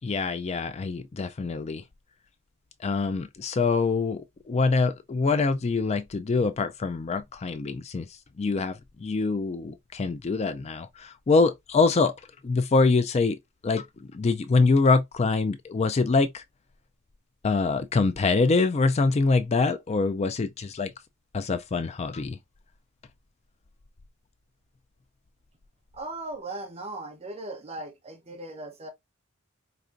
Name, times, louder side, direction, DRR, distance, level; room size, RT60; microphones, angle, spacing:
voice 1, 0.0-1.8 2.8-8.1 8.4-12.1 12.4-13.4 13.6-13.9 14.1-16.4 17.4-20.9 21.3-22.4, left 4 dB, 30° left, 0.4 m, -24 dB
voice 2, 25.9-28.9, right 2 dB, 30° right, 1.0 m, -38 dB
5.0 x 3.3 x 2.5 m
head